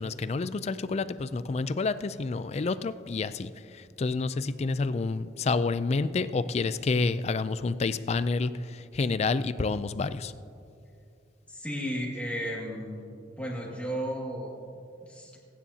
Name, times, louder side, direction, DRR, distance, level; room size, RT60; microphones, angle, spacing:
voice 1, 0.0-10.3, left 3 dB, 35° left, 13 dB, 0.3 m, -29 dB
voice 2, 11.5-13.1 13.4-15.4, equal, 10° left, -3 dB, 2.0 m, -34 dB
22.5 x 9.7 x 2.8 m, 2.6 s
head